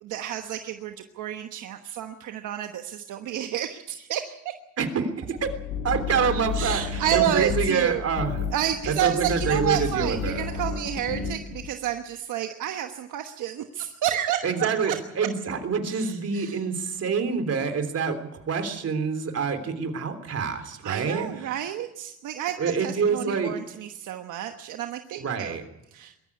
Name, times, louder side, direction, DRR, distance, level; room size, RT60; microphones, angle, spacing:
voice 1, 0.0-4.5 6.5-8.0 8.5-15.0 15.9-16.6 20.8-25.6 25.9-26.1, right 11 dB, 85° right, 6 dB, 1.2 m, -30 dB
voice 2, 4.8-5.5 5.8-8.4 8.9-10.4 14.4-18.2 18.5-21.5 22.6-23.5 25.2-25.6, right 5 dB, 55° right, 9 dB, 3.4 m, -26 dB
sound 1, 5.4-11.7, left 5 dB, 65° left, 4.4 m, -32 dB
21.5 x 13.5 x 9.8 m, 0.87 s
cardioid pair, 90°, 30 cm